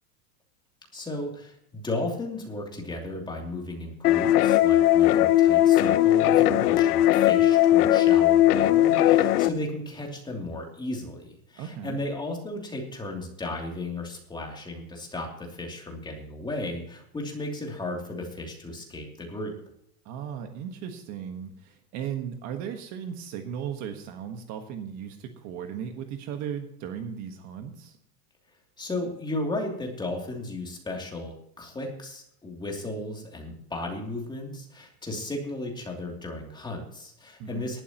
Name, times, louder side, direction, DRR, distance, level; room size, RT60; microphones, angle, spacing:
voice 1, 0.9-19.5 28.8-37.8, left 2 dB, 10° left, 0 dB, 2.9 m, -35 dB
sound 1, 4.0-9.5, left 13 dB, 75° left, 0.9 m, -19 dB
voice 2, 11.6-12.0 20.0-28.0 37.4-37.7, right 8 dB, 40° right, 6 dB, 1.4 m, -36 dB
18.0 x 12.0 x 3.0 m, 0.71 s
supercardioid pair, 155°, 46 cm